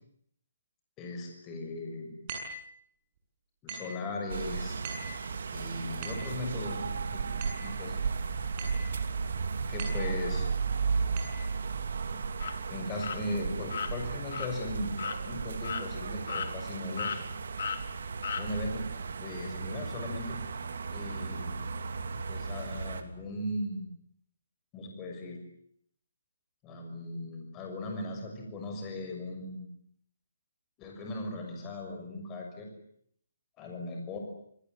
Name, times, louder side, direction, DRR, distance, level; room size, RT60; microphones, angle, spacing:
voice 1, 1.0-2.1 3.6-4.8 5.5-7.2 7.6-8.0 9.7-10.5 12.1-12.2 12.7-14.9 15.2-17.1 18.3-18.8 19.2-20.4 20.9-21.6 22.3-23.8 24.7-25.4 26.6-29.6 30.8-32.7 33.6-34.2, left 1 dB, 15° left, 2 dB, 6.5 m, -38 dB
sound 1, 2.3-2.7 3.7-4.0 4.8-5.2 6.0-6.4 7.4-7.7 8.6-8.9 9.8-10.2 11.2-11.4, right 3 dB, 30° right, 7.9 m, -41 dB
sound 2, 4.3-23.0, right 5 dB, 65° right, 3.1 m, -35 dB
sound 3, 12.4-12.5 13.0-13.2 13.7-13.9 14.3-14.5 15.0-15.2 15.6-15.8 16.3-16.7 17.0-17.2 17.6-17.8 18.2-18.4, left 6 dB, 55° left, 3.1 m, -34 dB
27.5 x 19.5 x 9.4 m, 0.68 s
hypercardioid pair, 170°, 0 cm